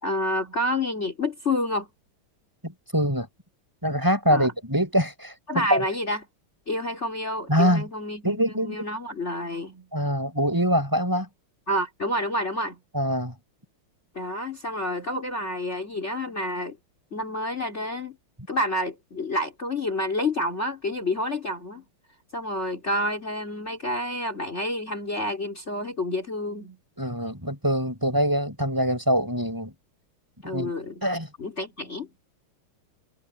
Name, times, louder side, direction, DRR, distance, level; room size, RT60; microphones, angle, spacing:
voice 1, 0.0-1.9 4.3-4.5 5.5-6.3 6.7-9.9 11.7-12.8 14.1-16.8 17.1-18.2 18.5-21.8 22.3-26.8 30.4-31.0 31.4-32.1, left 1 dB, 30° left, 3.8 m, -29 dB
voice 2, 2.6-3.3 3.8-5.9 7.5-7.9 8.2-8.8 9.9-11.3 12.9-13.3 27.0-29.7 30.5-30.7 31.0-31.3, equal, 10° right, 7.3 m, -24 dB
omnidirectional pair, 2.3 m